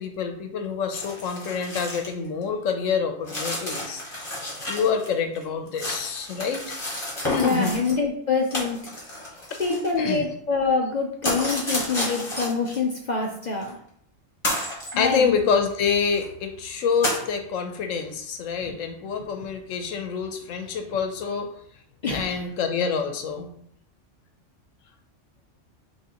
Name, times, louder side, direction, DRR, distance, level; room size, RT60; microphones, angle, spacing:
voice 1, 0.0-4.0 4.7-6.8 7.2-7.8 10.0-10.2 15.0-21.5 22.1-23.5, left 6 dB, 80° left, 6 dB, 1.0 m, -27 dB
sound 1, 0.9-2.1 2.4-2.5 3.3-5.1 5.4-7.9 8.5-10.2 11.2-12.8 13.6-13.7 14.4-15.0 15.7-15.8 16.1-16.3 17.0-17.3, left 1 dB, 25° left, 1.3 m, -31 dB
voice 2, 7.4-8.8 9.6-13.8 14.9-15.3 18.7-18.8 22.0-22.4, left 4 dB, 55° left, 1 dB, 0.5 m, -25 dB
6.0 x 3.1 x 2.9 m, 0.68 s
omnidirectional pair, 1.3 m